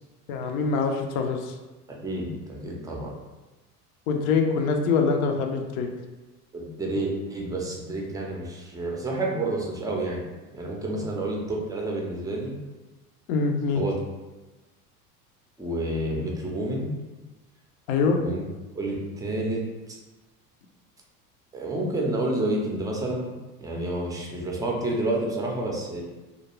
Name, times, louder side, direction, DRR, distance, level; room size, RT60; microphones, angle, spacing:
voice 1, 0.3-1.5 4.1-5.9 13.3-13.8 17.9-18.2, left 5 dB, 70° left, 4 dB, 0.5 m, -24 dB
voice 2, 1.9-3.1 6.5-10.2 10.5-12.5 13.7-14.0 15.6-16.9 18.2-18.4 18.8-19.6 19.9-20.0 21.5-23.3 23.6-26.0, right 2 dB, 10° right, -2 dB, 0.4 m, -29 dB
2.4 x 2.1 x 3.0 m, 1.1 s
hypercardioid pair, 80°, 45 cm